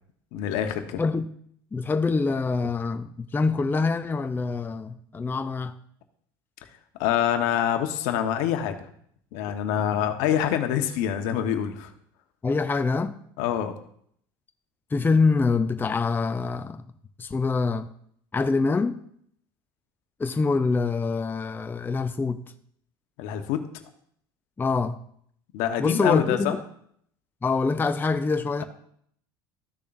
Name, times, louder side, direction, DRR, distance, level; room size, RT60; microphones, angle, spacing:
voice 1, 0.3-1.0 7.0-8.8 9.3-11.9 13.4-13.7 23.2-23.6 25.5-26.6, left 10 dB, 70° left, 1.1 m, -25 dB
voice 2, 1.0-1.3 1.7-5.7 12.4-13.2 14.9-16.8 17.2-17.9 18.3-19.0 20.2-22.4 24.6-25.0 25.8-26.6 27.4-28.6, left 4 dB, 15° left, 0.5 m, -25 dB
14.0 x 6.7 x 2.6 m
hypercardioid pair, 80°, 12 cm